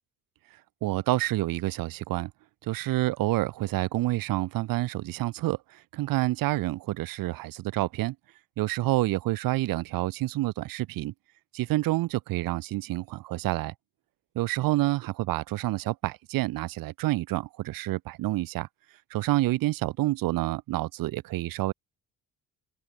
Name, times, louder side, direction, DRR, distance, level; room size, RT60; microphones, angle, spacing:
voice 1, 0.8-2.3 2.6-8.1 8.6-11.1 11.5-13.7 14.3-18.7 19.1-21.7, right 17 dB, 90° right, 3.1 m, -28 dB
open air
cardioid pair, 155°, 33 cm